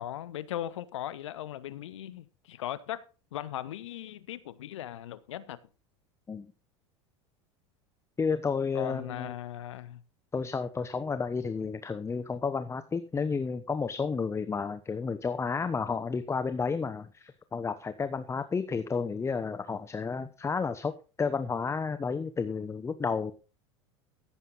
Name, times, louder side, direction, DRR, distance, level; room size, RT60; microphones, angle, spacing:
voice 1, 0.0-3.0 3.3-5.6 8.7-10.0, left 12 dB, 80° left, 0.9 m, -38 dB
voice 2, 8.2-9.3 10.3-23.3, left 5 dB, 20° left, 0.9 m, -31 dB
14.5 x 7.7 x 4.1 m
hypercardioid pair, 95°, 15 cm